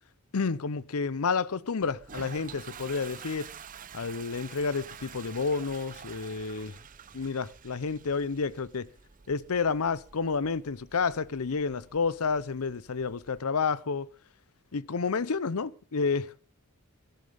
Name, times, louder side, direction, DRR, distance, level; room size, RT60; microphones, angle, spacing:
voice 1, 0.3-3.5 3.9-6.7 7.1-8.9 9.3-14.1 14.7-16.4, left 5 dB, 75° left, 0.7 m, -30 dB
Toilet flush, 1.8-13.4, right 7 dB, 35° right, 0.7 m, -48 dB
17.0 x 11.5 x 5.4 m
head